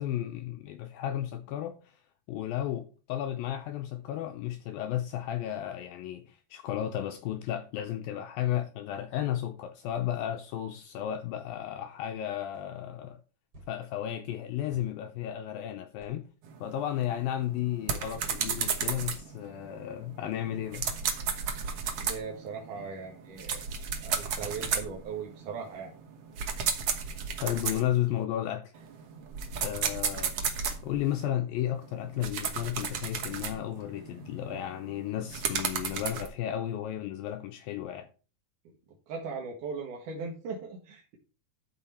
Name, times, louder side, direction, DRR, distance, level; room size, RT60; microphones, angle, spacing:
voice 1, 0.0-1.8 2.3-13.2 13.7-16.3 16.6-20.9 27.4-28.6 29.6-30.3 30.8-38.1, left 11 dB, 80° left, 2.2 m, -33 dB
sound 1, 12.5-12.7 13.5-13.8 14.7-14.9 16.0-16.2 16.9-17.1 18.5-18.8, right 1 dB, 35° right, 3.0 m, -54 dB
sound 2, 16.4-28.2 28.7-31.2 31.8-36.3, right 6 dB, 85° right, 1.2 m, -34 dB
voice 2, 22.0-23.6 24.0-25.9 38.6-38.7 39.1-41.2, right 5 dB, 60° right, 2.7 m, -38 dB
12.5 x 5.7 x 4.3 m
omnidirectional pair, 4.7 m